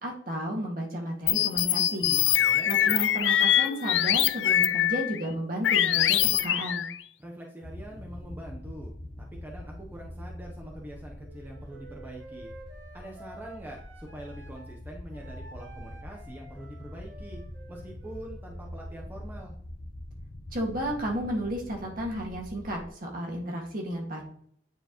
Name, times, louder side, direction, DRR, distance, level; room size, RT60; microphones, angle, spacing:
voice 1, 0.0-2.2 2.7-6.9 20.5-24.2, equal, 50° right, -1 dB, 1.9 m, -33 dB
sound 1, 1.3-5.2 5.6-7.0, left 11 dB, 75° left, 0.4 m, -24 dB
voice 2, 2.4-3.0 7.2-8.9 9.2-12.5 12.9-17.4 17.7-19.5, right 1 dB, 10° right, -1 dB, 0.8 m, -44 dB
sound 2, 7.6-22.9, left 1 dB, 50° left, 0.7 m, -44 dB
Wind instrument woodwind instrument, 11.2-14.8 15.1-18.9, right 2 dB, 80° right, 1.6 m, -50 dB
9.3 x 4.5 x 3.0 m, 0.65 s
head